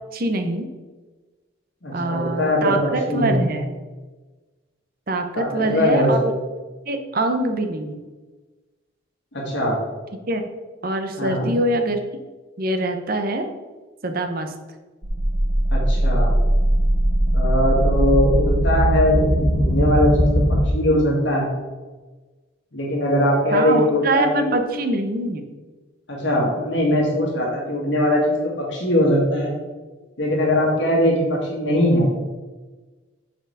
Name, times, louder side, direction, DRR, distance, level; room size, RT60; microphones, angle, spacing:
voice 1, 0.1-0.7 1.9-3.8 5.1-6.3 6.9-8.0 10.3-10.4 10.8-12.0 12.6-13.5 14.0-14.5 23.5-25.4, right 2 dB, 45° right, 6 dB, 0.7 m, -24 dB
voice 2, 1.8-3.4 5.4-6.1 9.3-9.8 11.2-11.5 15.7-16.4 17.3-20.3 20.7-21.5 22.7-24.5 26.1-29.5 30.2-32.1, left 1 dB, 60° left, -3 dB, 1.9 m, -21 dB
sound 1, 15.0-20.6, right 1 dB, 25° right, 1.0 m, -19 dB
6.5 x 4.5 x 4.8 m, 1.3 s
head